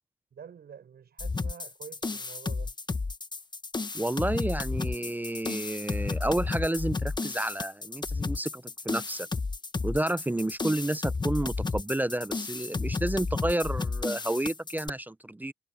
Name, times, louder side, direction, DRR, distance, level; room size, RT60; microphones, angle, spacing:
voice 1, 0.3-2.7, right 7 dB, 55° right, 6.6 m, -47 dB
sound 1, 1.2-14.9, left 3 dB, 20° left, 1.3 m, -32 dB
voice 2, 3.9-9.3 9.8-15.5, right 1 dB, 10° right, 0.5 m, -30 dB
cardioid pair, 90°, 20 cm